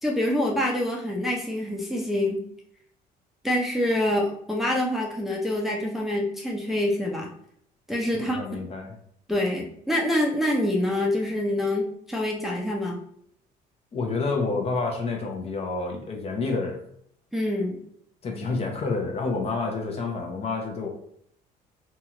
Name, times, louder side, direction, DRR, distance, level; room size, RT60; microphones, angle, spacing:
voice 1, 0.0-2.4 3.4-7.3 7.9-8.4 9.3-13.0 17.3-17.8, left 1 dB, ahead, -2 dB, 0.5 m, -26 dB
voice 2, 8.1-8.9 13.9-16.8 18.2-20.9, left 3 dB, 35° left, 2 dB, 0.7 m, -29 dB
2.8 x 2.4 x 2.8 m, 0.68 s
cardioid pair, 110°, 17 cm